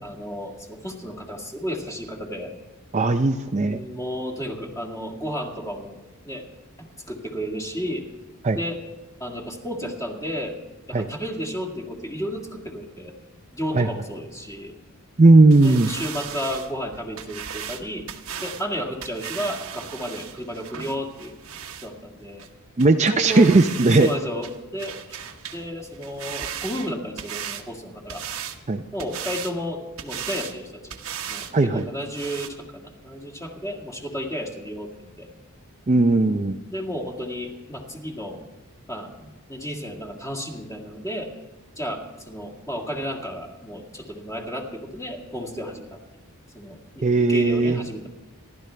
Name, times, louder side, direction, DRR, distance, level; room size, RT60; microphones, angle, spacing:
voice 1, 0.0-2.6 3.6-6.4 6.8-8.1 8.5-8.8 9.2-10.5 10.9-13.1 13.5-14.7 15.6-18.1 18.4-21.4 21.8-22.5 23.1-23.5 23.8-25.2 25.5-28.2 28.9-30.8 31.2-35.3 36.2-38.4 38.9-41.3 41.8-46.0 46.5-48.1, equal, 15° left, 1 dB, 2.0 m, -32 dB
voice 2, 2.9-3.8 8.4-8.6 10.9-11.1 13.7-13.9 15.2-15.9 22.8-24.1 28.7-28.8 31.5-31.8 35.9-36.6 47.0-47.8, right 2 dB, 30° right, 6 dB, 0.5 m, -17 dB
sound 1, 15.5-21.9 22.4-22.5 22.8-22.9 23.2-24.2 24.4-25.6 25.9-27.7 28.1-28.6 29.0-29.5 30.0-30.6 30.9-31.5 31.8-31.9 32.1-32.5, right 8 dB, 70° right, 1.2 m, -36 dB
27.0 x 12.0 x 3.4 m, 1.2 s
head